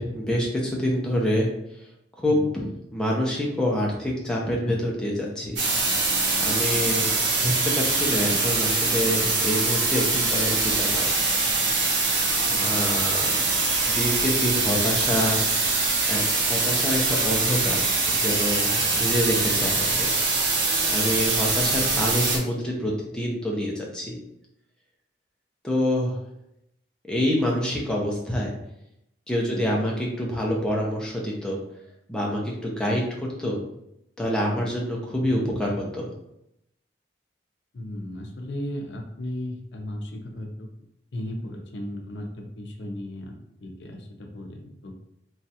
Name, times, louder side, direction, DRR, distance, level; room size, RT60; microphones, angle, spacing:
voice 1, 0.0-1.5 2.2-5.6 6.4-7.1 7.4-11.1 12.6-13.3 13.9-15.4 16.1-17.8 18.1-20.1 20.9-24.2 25.6-26.2 27.1-28.5 29.3-31.6 32.1-33.0 33.4-33.6 34.2-36.1, equal, 5° left, -3 dB, 0.5 m, -26 dB
sound 1, 5.6-22.4, right 3 dB, 85° right, 0.7 m, -23 dB
voice 2, 37.7-40.7 41.1-43.3 43.6-44.6 44.8-44.9, left 1 dB, 80° left, 2 dB, 0.5 m, -36 dB
3.1 x 2.3 x 2.7 m, 0.80 s
head